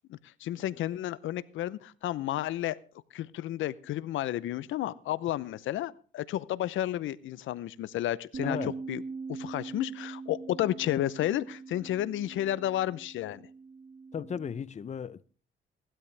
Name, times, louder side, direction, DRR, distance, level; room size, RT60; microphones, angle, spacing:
voice 1, 0.1-2.8 3.1-9.0 9.3-13.4, left 13 dB, 80° left, 0.7 m, -32 dB
Bass guitar, 8.3-14.6, right 4 dB, 45° right, 1.2 m, -42 dB
voice 2, 8.4-8.8 14.1-15.2, left 7 dB, 35° left, 0.7 m, -36 dB
18.5 x 12.5 x 3.4 m
cardioid pair, 90°, 20 cm